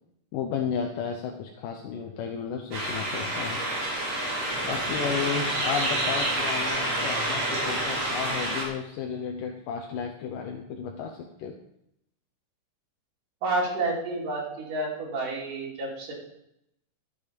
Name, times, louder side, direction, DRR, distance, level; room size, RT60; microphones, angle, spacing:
voice 1, 0.3-3.6 4.6-11.5, left 7 dB, 80° left, 3 dB, 2.5 m, -33 dB
sound 1, 2.7-8.6, right 1 dB, 50° right, 3.6 m, -28 dB
voice 2, 13.4-16.1, right 2 dB, 70° right, -4 dB, 4.5 m, -30 dB
12.5 x 8.3 x 5.2 m, 0.79 s
omnidirectional pair, 3.9 m